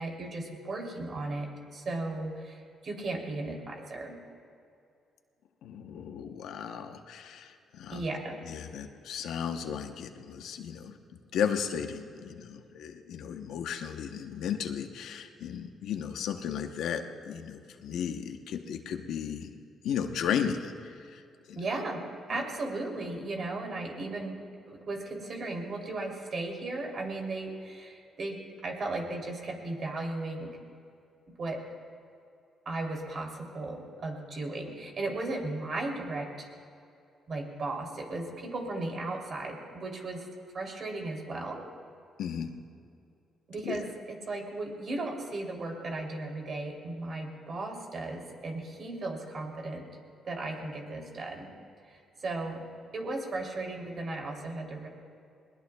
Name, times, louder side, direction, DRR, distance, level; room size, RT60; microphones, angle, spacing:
voice 1, 0.0-4.2 7.9-8.5 21.5-24.4 24.7-30.6 31.4-31.6 32.6-36.5 37.3-40.3 40.5-41.7 43.5-49.9 50.2-51.5 51.9-52.7 52.9-54.9, right 2 dB, 50° right, 1 dB, 3.1 m, -36 dB
voice 2, 5.6-8.1 8.5-11.0 11.3-21.2 21.5-21.6 22.3-22.4 42.2-42.5 43.6-43.8, left 8 dB, 80° left, 6 dB, 0.9 m, -35 dB
21.5 x 20.0 x 2.3 m, 2.4 s
cardioid pair, 90°, 0 cm